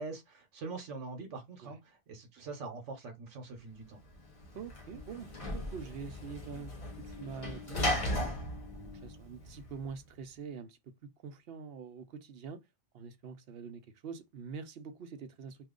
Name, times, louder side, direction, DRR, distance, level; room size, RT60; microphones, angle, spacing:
voice 1, 0.0-4.0, right 3 dB, 90° right, 1.2 m, -43 dB
Sliding door / Slam, 4.1-9.9, left 1 dB, 35° left, 0.7 m, -37 dB
voice 2, 4.5-8.4 8.8-12.6 12.9-15.6, right 6 dB, 65° right, 0.8 m, -45 dB
2.8 x 2.3 x 3.6 m
omnidirectional pair, 1.2 m